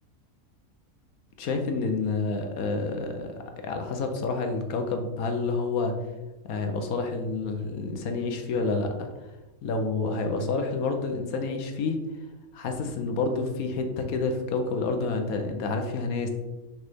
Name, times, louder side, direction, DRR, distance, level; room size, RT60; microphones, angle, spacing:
voice 1, 1.4-3.3 3.6-6.0 6.5-9.1 9.6-12.0 12.5-16.3, left 3 dB, 75° left, 5 dB, 1.3 m, -28 dB
6.5 x 4.9 x 3.5 m, 1.1 s
omnidirectional pair, 1.5 m